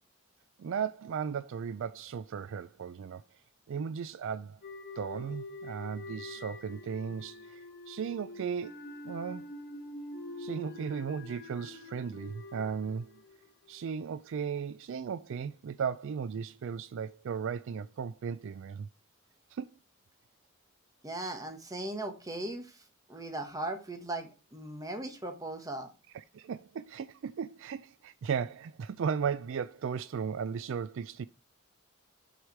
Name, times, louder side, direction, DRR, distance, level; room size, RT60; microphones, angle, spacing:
voice 1, 0.6-3.2 3.7-4.6 5.0-9.5 10.4-13.2 13.7-18.9 19.5-19.7 26.1-31.3, right 6 dB, 65° right, 0.4 m, -36 dB
sound 1, 4.6-13.8, left 2 dB, 50° left, 1.2 m, -45 dB
voice 2, 21.0-25.9, right 2 dB, 15° right, 1.4 m, -38 dB
6.3 x 4.9 x 6.0 m
head